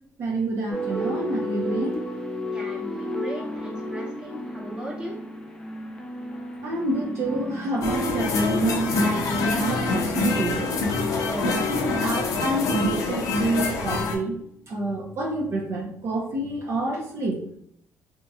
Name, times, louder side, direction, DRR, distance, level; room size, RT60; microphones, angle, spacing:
voice 1, 0.2-1.9 6.6-10.8 11.4-14.3 14.7-17.4, right 2 dB, 55° right, -2 dB, 0.7 m, -28 dB
sound 1, 0.7-14.1, left 1 dB, 15° left, 0.5 m, -34 dB
voice 2, 2.5-5.2 9.3-9.6 11.2-11.6 11.9-12.1, equal, 15° right, -3 dB, 1.1 m, -37 dB
sound 2, 7.8-14.2, left 3 dB, 70° left, 0.5 m, -25 dB
2.8 x 2.8 x 2.3 m, 0.69 s
cardioid pair, 85°, 6 cm